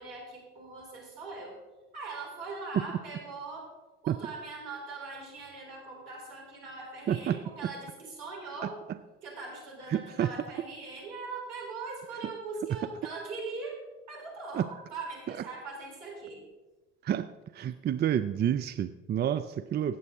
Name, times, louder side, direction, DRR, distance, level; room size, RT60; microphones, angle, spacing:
voice 1, 0.0-1.6 1.9-3.7 4.0-8.8 9.2-13.8 14.1-16.4, right 3 dB, 70° right, -2 dB, 4.0 m, -41 dB
voice 2, 9.9-10.3 14.5-14.6 17.0-17.3 17.5-20.0, right 10 dB, 30° right, 12 dB, 0.5 m, -29 dB
16.5 x 7.6 x 3.7 m, 1.1 s
hypercardioid pair, 60°, 32 cm